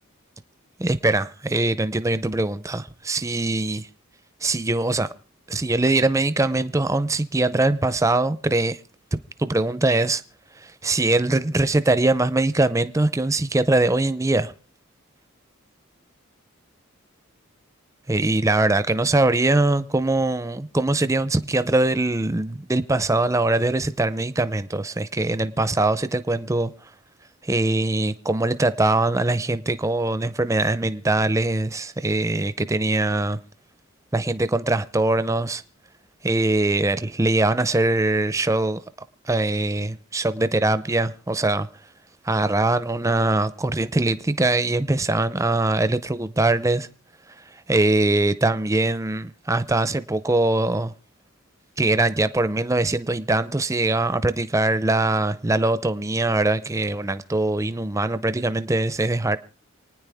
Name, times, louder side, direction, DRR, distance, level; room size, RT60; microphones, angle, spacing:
voice 1, 0.8-3.9 4.4-5.1 5.5-8.8 9.1-10.2 10.6-14.5 18.1-26.7 27.4-33.4 34.1-35.6 36.2-38.8 39.3-41.7 42.2-46.9 47.7-50.9 51.8-59.4, right 2 dB, 15° right, 0.5 m, -22 dB
28.5 x 9.6 x 3.5 m
head